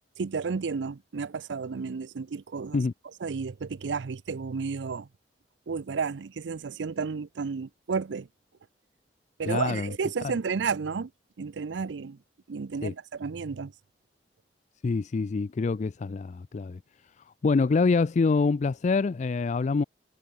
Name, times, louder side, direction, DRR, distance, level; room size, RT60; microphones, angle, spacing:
voice 1, 0.2-2.8 3.2-5.1 5.7-8.3 9.4-11.1 11.4-12.2 12.5-13.7, right 5 dB, 85° right, 0.5 m, -32 dB
voice 2, 9.5-9.9 12.8-12.9 14.8-16.8 17.4-19.8, left 4 dB, 40° left, 0.4 m, -25 dB
head